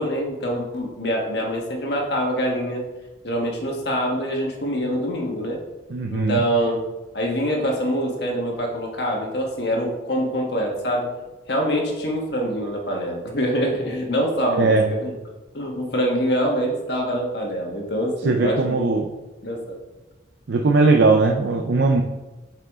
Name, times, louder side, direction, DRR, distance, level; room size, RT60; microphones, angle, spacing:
voice 1, 0.0-2.8 3.2-5.6 6.1-6.8 7.1-11.1 11.5-14.7 15.0-15.1 15.5-18.8 19.4-19.8, equal, 60° left, 0 dB, 1.4 m, -25 dB
voice 2, 5.9-6.4 14.5-14.9 18.2-19.1 20.5-22.0, right 3 dB, 65° right, 2 dB, 0.5 m, -19 dB
7.8 x 4.8 x 3.7 m, 1.1 s
head